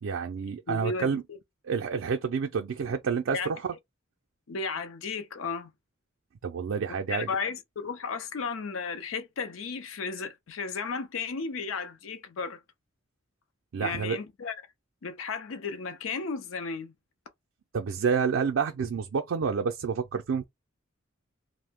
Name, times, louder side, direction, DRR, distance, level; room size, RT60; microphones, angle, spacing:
voice 1, 0.0-1.2 1.6-3.7 6.4-7.3 13.7-14.2 17.7-20.4, right 6 dB, 75° right, 0.4 m, -29 dB
voice 2, 0.7-1.4 3.3-3.6 4.5-5.7 7.1-12.6 13.8-14.6 15.0-16.9, left 4 dB, 85° left, 0.5 m, -34 dB
2.6 x 2.0 x 3.5 m
head